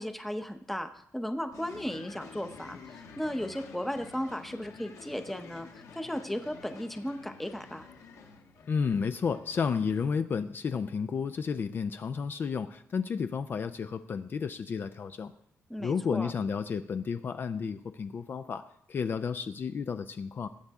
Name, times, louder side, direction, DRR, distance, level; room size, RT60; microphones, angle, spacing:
voice 1, 0.0-7.9 15.7-16.3, equal, 5° left, 8 dB, 0.7 m, -36 dB
sound 1, 1.5-10.1, left 5 dB, 75° left, 1.7 m, -50 dB
voice 2, 8.7-15.3 15.8-18.6 18.9-20.5, left 6 dB, 40° left, 10 dB, 0.4 m, -32 dB
19.5 x 8.0 x 3.6 m, 0.73 s
wide cardioid pair, 160°, 6 cm